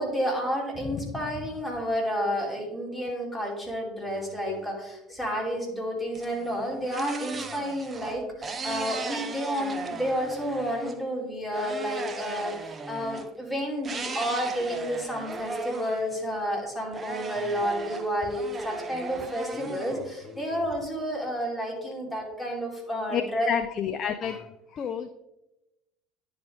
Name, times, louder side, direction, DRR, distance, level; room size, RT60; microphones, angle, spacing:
voice 1, 0.0-23.5, equal, ahead, -3 dB, 2.6 m, -30 dB
voice 2, 0.8-1.3 4.1-4.8 9.1-9.3 12.1-12.3 17.4-17.6 19.6-20.6 23.1-25.1, left 8 dB, 40° left, 9 dB, 0.3 m, -33 dB
sound 1, 6.1-11.0 11.5-13.3 13.8-16.5 16.9-20.6, right 4 dB, 30° right, 0.6 m, -37 dB
10.0 x 3.8 x 3.4 m, 0.94 s
figure-of-eight pair, 65°, 0 cm